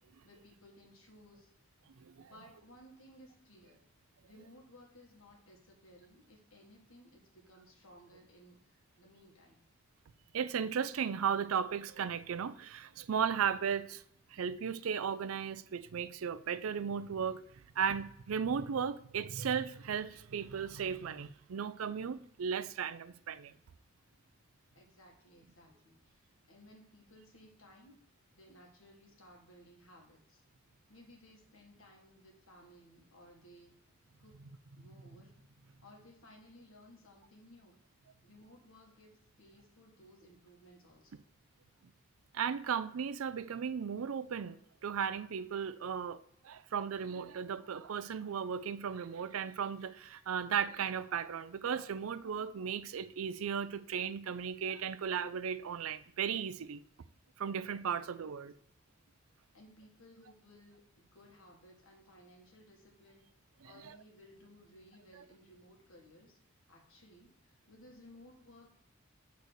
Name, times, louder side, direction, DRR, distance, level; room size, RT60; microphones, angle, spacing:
voice 1, 0.2-1.5 2.3-3.8 4.2-9.7 24.7-28.0 28.4-30.4 30.9-33.8 34.2-34.3 34.8-35.3 35.8-37.8 38.2-41.3 57.9-58.0 59.5-63.3 63.6-66.4 66.7-68.8, equal, 85° left, 1.9 m, -59 dB
voice 2, 1.9-2.3 10.3-14.0 14.3-17.4 17.8-23.5 42.3-56.8 57.4-58.5, right 7 dB, 90° right, 0.4 m, -36 dB
6.5 x 4.0 x 6.3 m
head